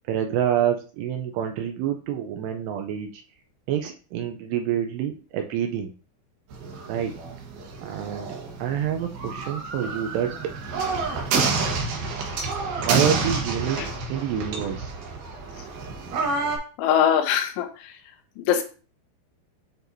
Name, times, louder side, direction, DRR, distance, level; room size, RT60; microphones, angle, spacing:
voice 1, 0.1-3.2 3.7-5.9 6.9-7.1 7.8-8.3 8.6-10.5 12.7-14.9, right 9 dB, 80° right, 4 dB, 2.5 m, -27 dB
sound 1, 6.5-16.6, right 4 dB, 65° right, 2.2 m, -29 dB
voice 2, 16.8-17.9 18.4-18.6, left 9 dB, 85° left, 6 dB, 3.3 m, -22 dB
8.9 x 4.5 x 2.7 m, 0.37 s
omnidirectional pair, 5.3 m